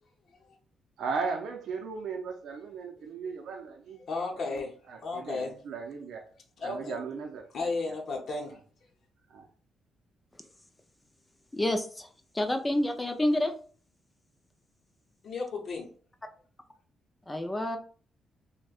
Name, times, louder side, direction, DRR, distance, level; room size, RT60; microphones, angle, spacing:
voice 1, 1.0-4.0 4.3-6.2 6.6-8.0 9.3-9.4, right 5 dB, 75° right, 2 dB, 0.5 m, -37 dB
voice 2, 4.0-4.7 5.0-5.6 6.6-7.0 7.5-8.5 15.2-15.9, left 3 dB, 45° left, -1 dB, 0.8 m, -33 dB
voice 3, 11.5-12.1 12.3-13.5 17.3-17.8, left 1 dB, 10° left, 6 dB, 0.4 m, -28 dB
6.1 x 2.2 x 2.4 m, 0.43 s
cardioid pair, 170°, 0 cm